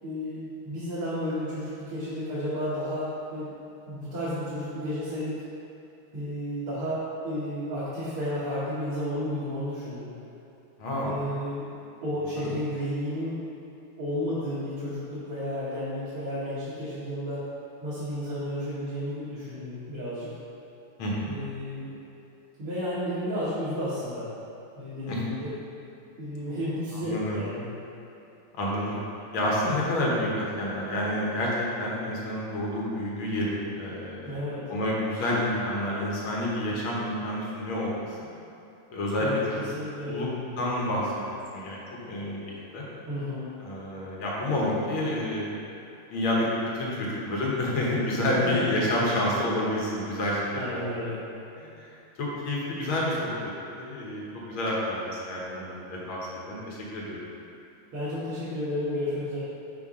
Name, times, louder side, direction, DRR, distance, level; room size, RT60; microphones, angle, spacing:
voice 1, 0.0-3.5 3.9-5.4 6.1-10.1 11.0-11.6 12.0-13.4 14.0-17.4 17.8-20.3 21.3-21.9 22.6-24.3 24.8-25.5 26.2-27.7 29.6-29.8 34.2-34.6 39.2-40.2 43.1-43.5 50.5-51.2 57.9-59.4, equal, 90° right, -12 dB, 2.3 m, -32 dB
voice 2, 10.8-11.1 12.4-12.5 21.0-21.4 25.1-25.2 26.9-27.4 28.5-29.0 29.3-38.3 38.9-39.6 40.0-40.3 40.6-42.8 43.6-45.6 46.1-50.9 51.6-51.9 52.2-53.3 53.7-57.2, left 1 dB, 75° left, -5 dB, 1.9 m, -29 dB
5.7 x 5.5 x 3.7 m, 2.8 s
omnidirectional pair, 2.3 m